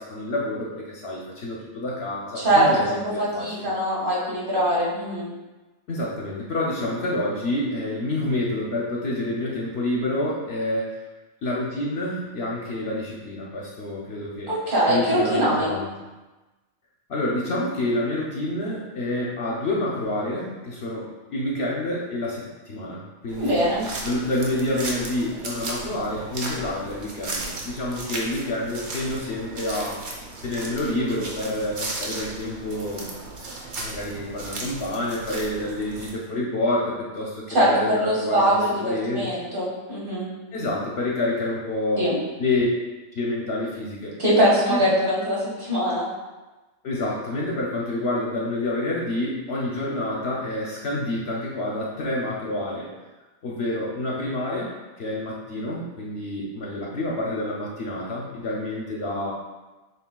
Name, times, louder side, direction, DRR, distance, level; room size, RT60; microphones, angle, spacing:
voice 1, 0.0-2.8 3.1-3.7 5.9-11.0 11.4-14.5 14.9-15.9 17.1-23.6 24.0-30.0 30.4-33.2 33.8-39.3 40.5-42.1 42.4-42.7 43.2-44.1 44.7-44.8 46.8-52.9 53.4-54.7 55.0-59.3, left 1 dB, 60° left, -3 dB, 0.8 m, -28 dB
voice 2, 2.4-5.3 14.5-15.7 23.4-23.8 37.5-37.7 38.0-40.3 42.0-42.2 44.2-46.1, right 1 dB, 40° right, -6 dB, 1.5 m, -22 dB
sound 1, 23.3-36.1, right 2 dB, 60° right, 1.0 m, -35 dB
7.1 x 3.3 x 2.2 m, 1.1 s
omnidirectional pair, 1.4 m